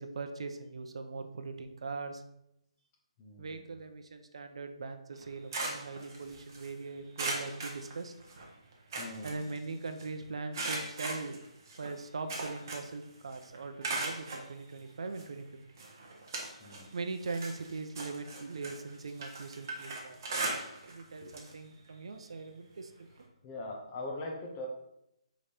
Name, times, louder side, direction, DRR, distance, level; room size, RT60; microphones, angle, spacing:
voice 1, 0.0-2.2 3.4-8.1 9.2-11.4 11.8-15.5 16.9-20.3 20.9-22.9, right 3 dB, 55° right, 7 dB, 0.6 m, -41 dB
voice 2, 3.2-3.7 9.0-9.5 16.6-17.0 23.4-24.7, left 2 dB, 15° left, 0 dB, 0.8 m, -41 dB
sound 1, 5.1-6.7 7.2-8.4 8.7-10.0 10.5-13.0 13.3-14.5 15.2-15.3 15.8-16.9 17.2-21.0 21.3-21.5 21.9-22.0 23.2-23.3, right 2 dB, 30° right, 1.1 m, -38 dB
5.2 x 5.0 x 4.3 m, 0.81 s
hypercardioid pair, 175°, 4 cm